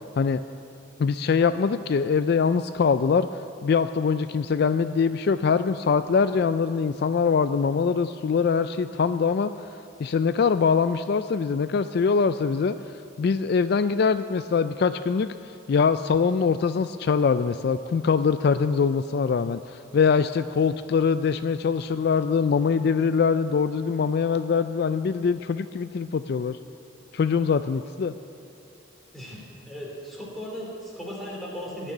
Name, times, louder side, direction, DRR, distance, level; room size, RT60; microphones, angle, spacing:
voice 1, 1.0-9.5 10.0-12.8 13.2-15.3 15.7-26.6 27.1-28.1, left 5 dB, 50° left, 11 dB, 0.3 m, -23 dB
voice 2, 29.1-31.9, equal, ahead, -4 dB, 3.0 m, -37 dB
17.0 x 6.7 x 9.8 m, 2.7 s
head